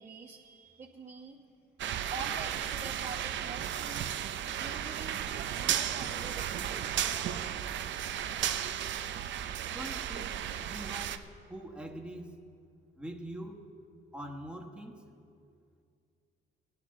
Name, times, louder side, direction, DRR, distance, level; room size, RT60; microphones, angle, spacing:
voice 1, 0.0-1.4 2.1-4.1 4.6-5.2 5.6-7.8, right 4 dB, 35° right, 0 dB, 0.9 m, -46 dB
sound 1, 1.8-11.2, right 10 dB, 70° right, 0.5 m, -34 dB
voice 2, 9.7-11.2 11.5-12.4 13.0-13.6 14.1-15.1, right 1 dB, 5° right, 1 dB, 1.2 m, -43 dB
18.5 x 10.5 x 3.7 m, 2.4 s
cardioid pair, 90°, 20 cm